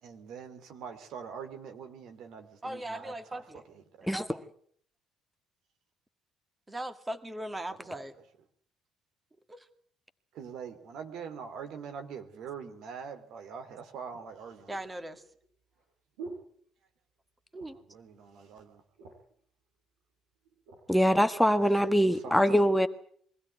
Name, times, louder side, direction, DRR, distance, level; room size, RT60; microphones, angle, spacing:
voice 1, 0.0-3.1 4.0-4.1 10.3-14.7 17.9-18.8 21.6-22.9, right 6 dB, 70° right, 7 dB, 3.0 m, -43 dB
voice 2, 2.6-3.7 4.0-4.5 6.7-8.1 9.5-9.7 14.7-15.2 17.5-17.8, right 1 dB, 20° right, 9 dB, 2.3 m, -39 dB
sound 1, 14.1-17.2 17.5-18.0 18.3-18.4 18.7-19.4 20.1-20.9 21.5-21.7, right 4 dB, 90° right, 7.2 m, -49 dB
voice 3, 20.9-22.9, equal, 5° left, 9 dB, 1.4 m, -23 dB
23.5 x 16.0 x 9.4 m, 0.63 s
supercardioid pair, 65°, 0 cm